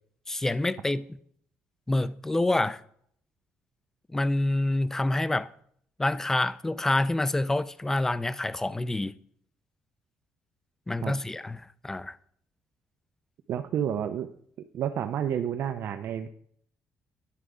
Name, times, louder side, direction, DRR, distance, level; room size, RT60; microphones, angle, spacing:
voice 1, 0.3-1.0 1.9-2.8 4.1-5.5 6.0-9.1 10.9-12.2, left 2 dB, 10° left, 0.3 m, -27 dB
voice 2, 13.5-14.3 14.7-16.3, right 9 dB, 65° right, 0.4 m, -30 dB
10.0 x 4.6 x 4.9 m
cardioid pair, 125°, 4 cm